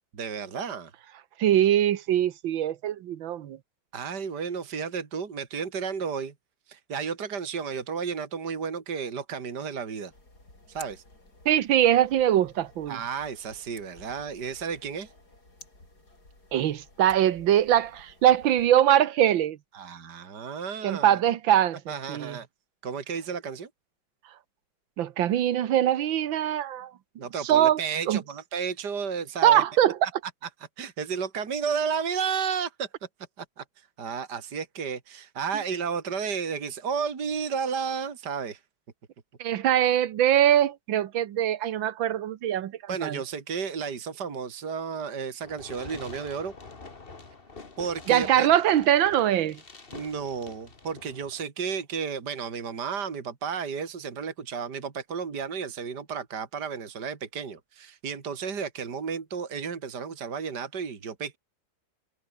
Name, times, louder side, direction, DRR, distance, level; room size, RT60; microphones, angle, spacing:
voice 1, 0.1-0.9 3.9-6.3 6.7-10.1 10.7-11.0 12.9-15.1 19.7-21.2 21.9-22.5 22.8-23.7 27.2-29.6 30.8-32.9 33.4-38.6 42.9-46.5 47.8-48.5 49.9-61.4, right 6 dB, 55° right, 2.8 m, -32 dB
voice 2, 1.4-3.6 11.5-13.0 16.5-19.6 20.8-21.8 22.1-22.4 25.0-26.9 27.4-27.8 28.1-28.2 29.4-30.0 39.4-42.7 43.0-43.2 48.1-49.6, right 11 dB, 80° right, 1.8 m, -22 dB
sound 1, 10.1-18.7, left 2 dB, 50° left, 8.2 m, -53 dB
Fireworks, 45.4-51.4, left 3 dB, 30° left, 2.2 m, -46 dB
omnidirectional pair, 2.1 m